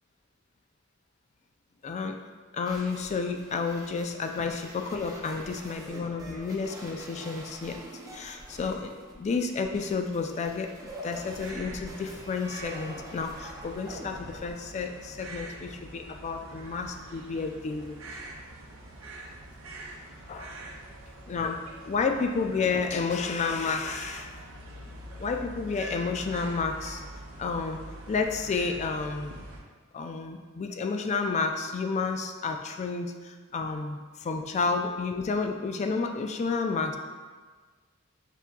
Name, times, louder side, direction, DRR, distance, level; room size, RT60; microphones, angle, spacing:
voice 1, 1.8-2.2 2.5-7.8 8.1-18.2 20.3-20.6 21.3-21.6 21.9-24.3 25.2-27.0 27.4-27.8 28.1-29.4 29.9-37.0, left 4 dB, 35° left, 5 dB, 0.3 m, -31 dB
sound 1, 2.6-14.5, equal, 15° right, 0.5 m, -45 dB
sound 2, 11.1-29.6, right 1 dB, 80° right, 0.6 m, -44 dB
5.8 x 3.5 x 2.2 m, 1.4 s
head